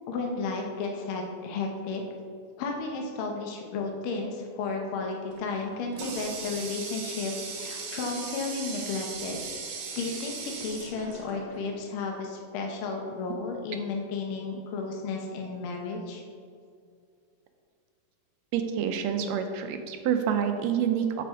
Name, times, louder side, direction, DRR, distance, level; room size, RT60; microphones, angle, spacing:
voice 1, 0.1-2.0 2.6-9.4 9.9-16.2, left 4 dB, 75° left, 1 dB, 1.2 m, -33 dB
Water tap faucet, 5.3-11.8, right 5 dB, 60° right, 1.8 m, -38 dB
voice 2, 18.5-21.2, right 8 dB, 75° right, 6 dB, 1.8 m, -27 dB
8.3 x 6.8 x 3.6 m, 2.3 s
omnidirectional pair, 3.3 m